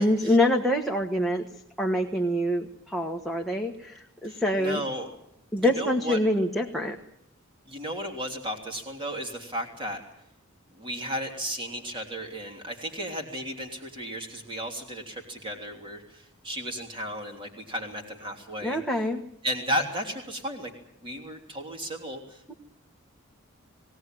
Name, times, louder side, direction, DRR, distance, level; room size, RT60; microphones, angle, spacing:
voice 1, 0.0-1.4 1.8-4.8 5.5-7.0 18.6-19.2 22.5-22.6, left 1 dB, ahead, 0 dB, 1.3 m, -25 dB
voice 2, 4.2-5.1 5.6-6.2 7.7-10.0 10.7-19.0 19.4-20.7 21.0-22.5, equal, 25° right, 3 dB, 3.2 m, -34 dB
20.5 x 18.0 x 9.1 m, 0.77 s
head